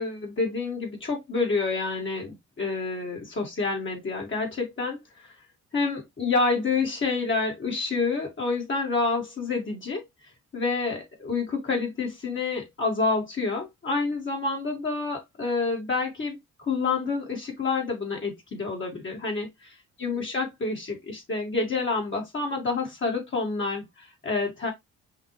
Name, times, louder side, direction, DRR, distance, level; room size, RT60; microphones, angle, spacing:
voice 1, 0.0-5.0 5.7-10.0 10.5-19.7 20.0-24.7, left 4 dB, 40° left, 2.0 m, -28 dB
5.7 x 2.7 x 3.1 m
cardioid pair, 90°, 30 cm